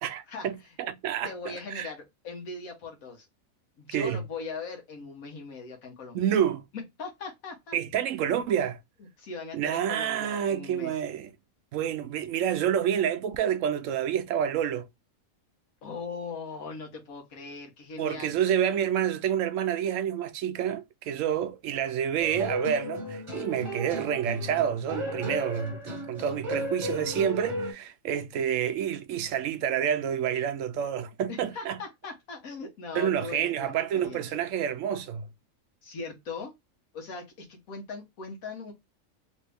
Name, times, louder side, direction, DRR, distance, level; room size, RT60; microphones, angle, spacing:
voice 1, 0.0-1.3 1.7-1.9 3.9-4.2 6.1-6.6 7.7-8.8 9.5-11.3 11.7-14.8 18.0-31.8 32.9-35.3, right 9 dB, 70° right, 0.9 m, -28 dB
voice 2, 1.2-3.3 3.8-6.3 6.7-7.8 9.2-10.9 15.8-18.3 31.3-34.4 35.8-36.5 36.9-38.7, left 4 dB, 85° left, 1.4 m, -40 dB
sound 1, 22.2-27.7, equal, 25° right, 0.9 m, -35 dB
3.2 x 2.6 x 3.3 m
omnidirectional pair, 1.4 m